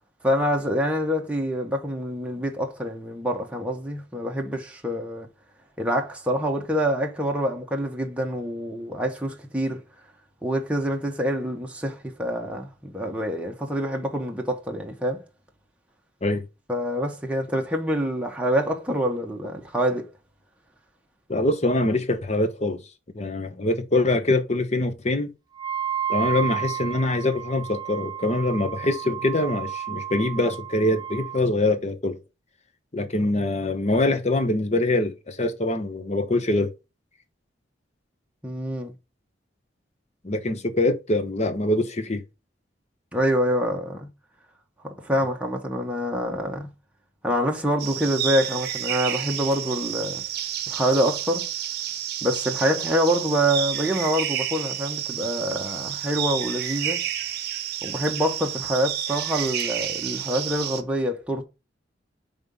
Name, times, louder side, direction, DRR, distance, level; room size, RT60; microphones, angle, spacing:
voice 1, 0.2-5.3 5.8-9.8 10.4-15.2 16.7-20.1 38.4-38.9 43.1-44.1 44.8-46.7 47.2-50.2 50.7-51.5 52.2-57.0 57.8-61.4, equal, 5° right, 1.0 m, -26 dB
voice 2, 21.3-22.8 23.1-25.3 26.1-32.2 32.9-36.7 40.2-42.2, left 2 dB, 40° left, 0.9 m, -24 dB
Wind instrument woodwind instrument, 25.6-31.4, right 9 dB, 25° right, 0.5 m, -32 dB
sound 1, 47.8-60.8, right 10 dB, 60° right, 0.7 m, -30 dB
5.4 x 3.7 x 5.2 m
head